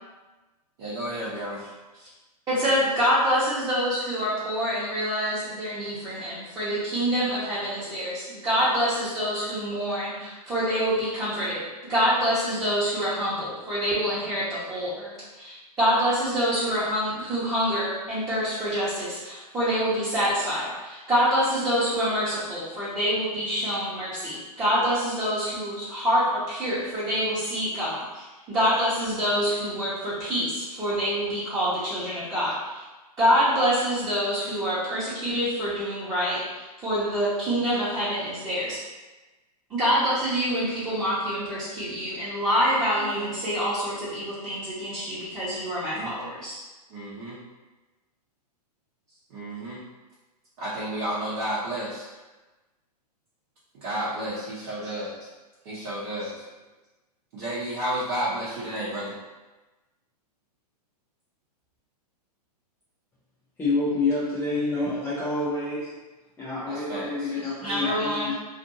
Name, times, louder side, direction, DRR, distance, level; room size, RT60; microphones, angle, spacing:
voice 1, 0.8-1.6 9.5-9.6 43.0-43.1 45.9-46.1 46.9-47.4 49.3-49.8 50.6-52.0 53.8-55.3 55.6-56.4 57.3-59.2 66.7-67.3, right 1 dB, 50° right, -9 dB, 0.9 m, -32 dB
voice 2, 2.5-32.8 33.2-38.8 39.7-46.6 67.6-68.3, equal, 15° right, -13 dB, 1.0 m, -26 dB
voice 3, 63.6-65.9 66.4-68.4, left 2 dB, 10° left, -10 dB, 0.5 m, -27 dB
2.6 x 2.6 x 2.6 m, 1.2 s
hypercardioid pair, 125°, 21 cm